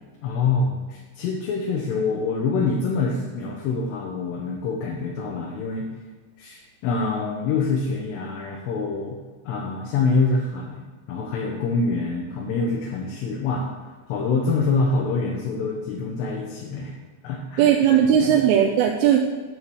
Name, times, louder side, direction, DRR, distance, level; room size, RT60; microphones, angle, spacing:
voice 1, 0.2-5.9 6.4-9.2 9.5-13.7 14.1-16.9 17.2-18.4, left 4 dB, 75° left, -1 dB, 2.8 m, -25 dB
voice 2, 17.6-19.3, right 9 dB, 90° right, 1 dB, 3.2 m, -18 dB
9.9 x 4.7 x 7.0 m, 1.4 s
omnidirectional pair, 5.5 m